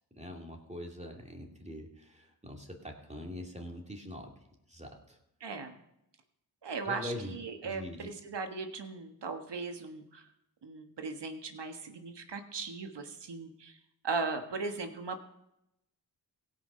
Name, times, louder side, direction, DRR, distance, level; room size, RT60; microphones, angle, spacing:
voice 1, 0.1-4.3 4.7-5.2 6.8-7.4 7.6-8.1, left 1 dB, 15° right, 1 dB, 2.5 m, -43 dB
voice 2, 5.4-5.8 6.6-10.2 10.6-13.8 14.0-15.2, right 4 dB, 65° right, 6 dB, 1.5 m, -38 dB
17.0 x 5.7 x 5.6 m, 0.83 s
cardioid pair, 40°, 45 cm